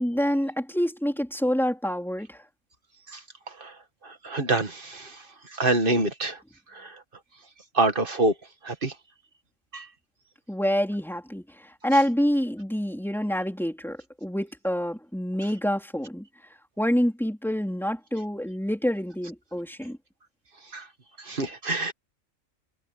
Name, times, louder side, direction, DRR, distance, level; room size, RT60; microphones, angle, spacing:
voice 1, 0.0-2.4 10.5-16.3 16.8-20.0, equal, ahead, 3.5 m, -27 dB
voice 2, 3.1-3.8 4.0-5.3 5.5-6.4 6.7-7.0 7.7-8.3 8.6-8.9 9.7-9.9 20.7-20.9 21.2-21.9, right 2 dB, 45° right, 2.0 m, -26 dB
omnidirectional pair, 1.3 m